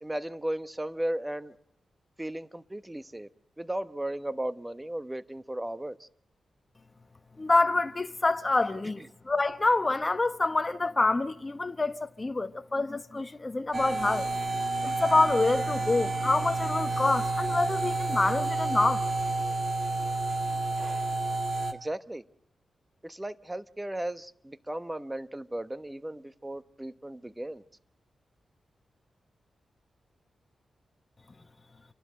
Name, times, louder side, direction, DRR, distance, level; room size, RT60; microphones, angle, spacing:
voice 1, 0.0-1.5 2.2-3.3 3.6-6.1 8.8-9.1 21.7-22.2 23.0-27.6, right 1 dB, 10° right, 1.0 m, -35 dB
voice 2, 7.4-14.3 14.8-19.0, left 2 dB, 25° left, 1.1 m, -27 dB
sound 1, 13.7-21.7, right 2 dB, 40° right, 1.6 m, -30 dB
29.0 x 12.0 x 7.6 m
cardioid pair, 95°, 0 cm